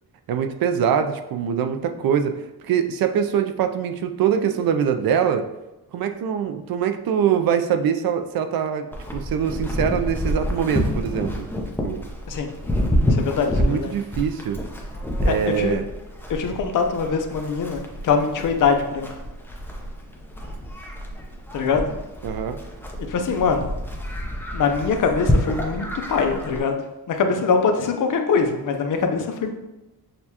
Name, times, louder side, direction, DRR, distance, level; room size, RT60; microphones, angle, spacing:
voice 1, 0.3-5.4 5.9-8.9 9.1-11.5 11.8-12.1 13.6-14.6 15.2-15.8 22.2-22.6, right 8 dB, 70° right, 8 dB, 0.5 m, -23 dB
Livestock farm animals working animals, 8.9-26.6, equal, 5° left, 0.5 m, -28 dB
voice 2, 13.0-13.9 15.3-15.8 16.3-19.2 21.5-21.9 23.1-23.7 24.5-26.8 27.1-29.5, left 5 dB, 55° left, 5 dB, 0.6 m, -23 dB
6.5 x 2.3 x 2.8 m, 1.0 s
wide cardioid pair, 140°, 37 cm